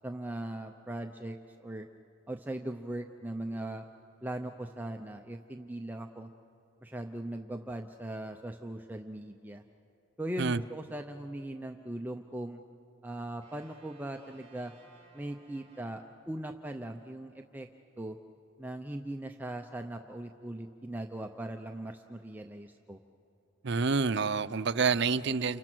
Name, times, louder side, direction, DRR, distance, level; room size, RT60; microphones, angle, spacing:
voice 1, 0.0-1.4 1.6-1.9 2.3-3.8 4.2-6.3 6.8-9.6 10.2-12.6 13.0-14.7 15.1-17.7 18.0-18.2 18.6-23.0, right 1 dB, 10° right, 4 dB, 0.6 m, -39 dB
sound 1, 13.4-16.7, right 3 dB, 30° right, 5.1 m, -61 dB
voice 2, 23.6-25.6, right 5 dB, 55° right, 14 dB, 0.6 m, -28 dB
29.0 x 28.5 x 6.1 m, 2.7 s
head